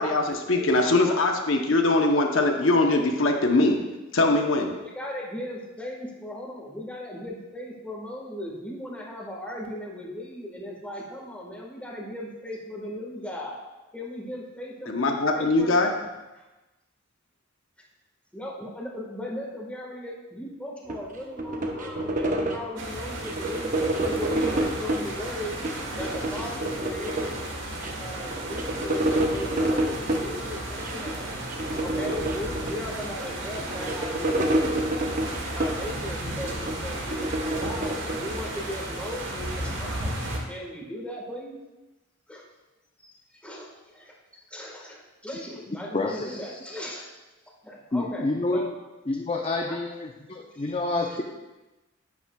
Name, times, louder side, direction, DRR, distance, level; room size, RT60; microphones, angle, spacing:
voice 1, 0.0-3.8 4.1-4.7 14.9-15.9, left 2 dB, 70° left, 3 dB, 0.8 m, -22 dB
voice 2, 0.5-1.3 2.2-2.7 4.8-13.6 13.9-14.9 15.3-15.9 16.3-16.5 18.3-25.6 25.9-27.4 27.9-31.3 31.8-34.5 35.5-40.2 40.5-41.6 42.3-42.4 43.0-43.1 43.4-44.1 44.5-47.1 47.6-48.2 48.5-48.7 49.7-49.8 50.5-50.7 51.0-51.2, left 1 dB, 5° left, -2 dB, 1.4 m, -37 dB
sound 1, 20.9-22.8 23.2-25.1 25.5-27.5 27.8-27.9 28.2-30.3 30.8-31.1 31.5-33.1 33.5-36.0 36.4-38.7, right 1 dB, 40° right, 0.8 m, -28 dB
sound 2, 22.8-40.4, right 1 dB, 65° right, 1.4 m, -34 dB
voice 3, 45.9-46.3 47.9-48.7 49.1-51.2, left 2 dB, 30° left, 0 dB, 0.5 m, -28 dB
10.5 x 8.5 x 2.3 m, 1.1 s
head